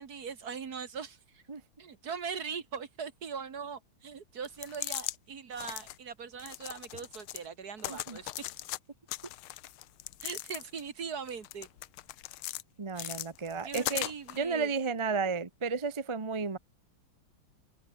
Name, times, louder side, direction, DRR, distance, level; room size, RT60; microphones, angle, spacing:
voice 1, 0.0-1.4 1.8-8.3 10.2-11.7 12.9-13.2 13.6-14.7, right 6 dB, 50° right, 2.1 m, -41 dB
sound 1, 4.5-5.2 5.5-6.0 6.4-7.5 7.8-8.8 9.1-10.9 11.3-12.6 13.0-14.4, left 15 dB, 90° left, 1.6 m, -39 dB
voice 2, 12.8-14.1 14.3-16.6, right 5 dB, 25° right, 0.6 m, -32 dB
open air
omnidirectional pair, 2.3 m